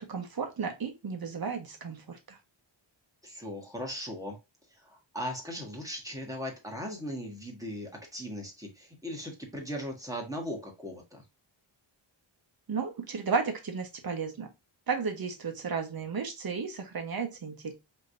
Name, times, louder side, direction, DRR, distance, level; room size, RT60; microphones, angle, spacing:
voice 1, 0.1-2.4 12.7-14.5 14.9-17.7, right 5 dB, 45° right, 5 dB, 1.2 m, -33 dB
voice 2, 3.2-4.4 4.8-11.2, equal, 5° right, 0 dB, 1.5 m, -38 dB
5.1 x 3.3 x 2.6 m, 0.24 s
wide cardioid pair, 155°, 48 cm